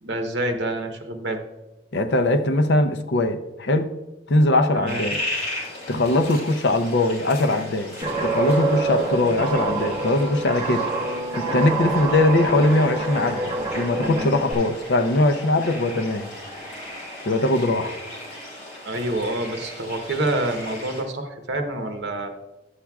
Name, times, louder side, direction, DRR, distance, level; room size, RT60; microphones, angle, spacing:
voice 1, 0.0-1.4 4.7-5.0 18.8-22.3, right 1 dB, 70° right, 5 dB, 0.8 m, -27 dB
voice 2, 1.9-3.9 4.3-5.2 5.9-7.9 8.2-16.3 17.2-17.9, left 2 dB, 70° left, 7 dB, 0.6 m, -21 dB
sound 1, 4.9-21.0, left 1 dB, 35° left, 2.4 m, -37 dB
Guitar, 8.0-14.5, right 3 dB, 30° right, 0.9 m, -26 dB
sound 2, 11.6-20.5, equal, ahead, 1.2 m, -44 dB
11.0 x 7.3 x 2.3 m, 1.0 s
head